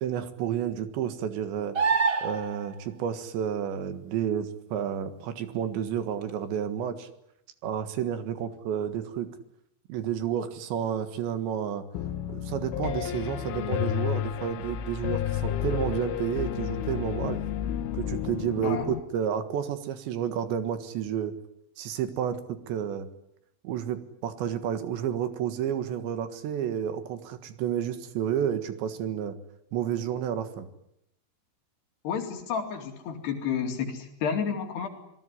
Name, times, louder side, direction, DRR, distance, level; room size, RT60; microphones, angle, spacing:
voice 1, 0.0-1.8 2.2-7.1 7.6-9.3 9.9-11.8 12.3-17.4 17.9-21.3 21.8-23.1 23.6-29.4 29.7-30.7, right 9 dB, 70° right, 10 dB, 3.8 m, -31 dB
sound 1, 1.7-2.7 6.2-6.3, right 5 dB, 55° right, 0.9 m, -25 dB
Piano, 11.9-19.0, left 11 dB, 85° left, 3.8 m, -31 dB
voice 2, 18.6-18.9 32.0-34.9, left 7 dB, 60° left, 6 dB, 4.5 m, -31 dB
27.0 x 19.5 x 9.9 m, 0.79 s
omnidirectional pair, 5.5 m